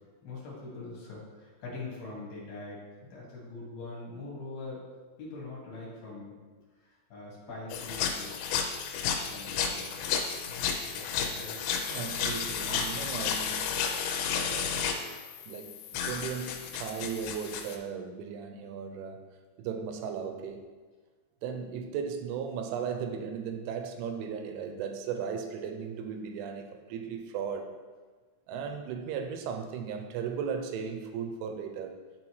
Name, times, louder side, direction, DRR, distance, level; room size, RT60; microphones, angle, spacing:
voice 1, 0.2-2.8 3.1-4.8 5.2-6.3 6.8-8.3 9.3-10.2 10.5-11.6, left 3 dB, 60° left, -5 dB, 3.1 m, -43 dB
sound 1, 7.7-17.8, left 7 dB, 90° left, 3.4 m, -32 dB
voice 2, 11.9-19.2 19.6-20.6 21.4-27.7 28.5-32.0, right 6 dB, 85° right, 6 dB, 2.8 m, -37 dB
11.5 x 4.0 x 3.1 m, 1.4 s
omnidirectional pair, 5.9 m